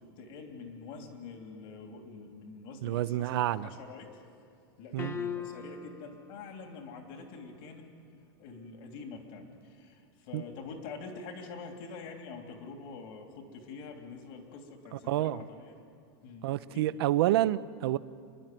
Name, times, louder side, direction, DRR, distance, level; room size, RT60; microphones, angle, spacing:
voice 1, 0.0-4.1 4.8-7.8 8.4-15.7 16.2-16.8, left 4 dB, 55° left, 3 dB, 3.1 m, -46 dB
voice 2, 2.8-3.7 4.9-5.2 10.3-10.4 14.9-15.4 16.4-18.0, right 14 dB, 70° right, 15 dB, 0.6 m, -28 dB
sound 1, 5.0-6.0, left 7 dB, 20° left, 1.2 m, -37 dB
29.0 x 11.0 x 9.3 m, 2.3 s
supercardioid pair, 145°, 13 cm